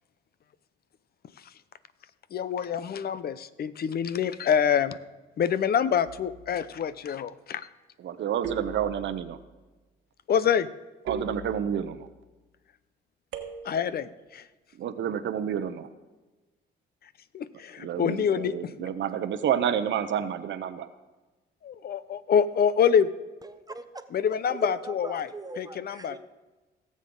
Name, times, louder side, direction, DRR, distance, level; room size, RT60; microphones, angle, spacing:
voice 1, 2.3-5.0 5.4-7.7 10.3-10.7 13.6-14.4 17.3-18.9 21.6-23.1 24.1-25.3 25.6-26.2, left 8 dB, 50° left, 16 dB, 0.7 m, -26 dB
sound 1, 6.0-6.6 8.4-9.4 11.1-12.0 13.3-14.0, right 5 dB, 90° right, 1.3 m, -39 dB
voice 2, 8.0-9.4 11.1-12.1 14.8-15.8 17.8-20.9, right 9 dB, 65° right, 11 dB, 0.8 m, -29 dB
voice 3, 23.4-24.0 24.5-26.2, right 3 dB, 20° right, 10 dB, 0.7 m, -40 dB
17.0 x 7.5 x 3.8 m, 1.2 s
cardioid pair, 90°, 20 cm